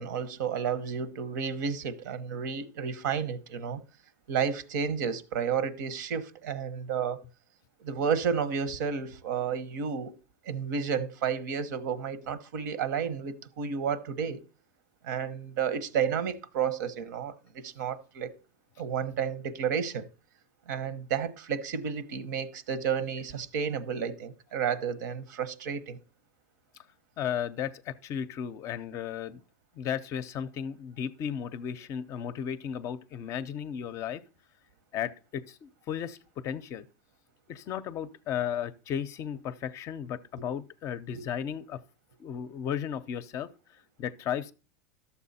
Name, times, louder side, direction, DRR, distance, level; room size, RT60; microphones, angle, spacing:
voice 1, 0.0-3.8 4.3-7.2 7.8-10.2 10.4-14.4 15.0-17.3 17.6-18.3 18.8-20.1 20.7-26.0 40.4-40.5 41.1-41.2, right 7 dB, 85° right, 1.0 m, -31 dB
voice 2, 27.2-29.4 29.8-34.2 34.9-36.9 37.5-41.8 42.2-43.5 44.0-44.5, left 9 dB, 30° left, 0.5 m, -34 dB
12.5 x 7.0 x 4.1 m
supercardioid pair, 160°, 10 cm